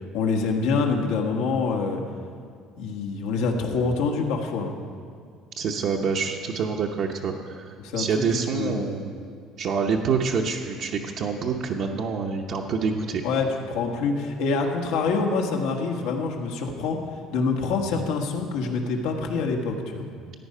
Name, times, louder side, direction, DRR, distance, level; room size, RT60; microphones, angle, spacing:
voice 1, 0.1-2.0 2.8-4.7 7.8-8.1 8.3-9.0 13.2-17.0 17.3-20.1, left 4 dB, 85° left, 2 dB, 1.6 m, -26 dB
voice 2, 5.6-7.6 8.0-9.3 9.6-13.2, right 5 dB, 55° right, -1 dB, 0.8 m, -27 dB
15.0 x 9.6 x 5.5 m, 2.2 s
cardioid pair, 135°, 0 cm